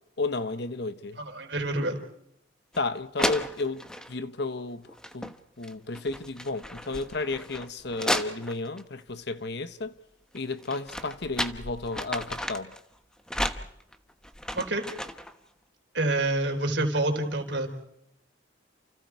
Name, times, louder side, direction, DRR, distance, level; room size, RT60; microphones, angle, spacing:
voice 1, 0.2-1.2 2.8-4.8 5.1-9.9 10.3-12.7, left 3 dB, 60° left, 1.1 m, -32 dB
voice 2, 1.2-2.0 14.6-14.8 15.9-17.7, right 2 dB, 65° right, 4.0 m, -27 dB
sound 1, 2.7-2.8 3.2-4.1 4.9-5.4 5.6-8.8 10.4-12.8 13.3-15.3, equal, 5° left, 1.0 m, -33 dB
29.0 x 29.0 x 4.7 m
head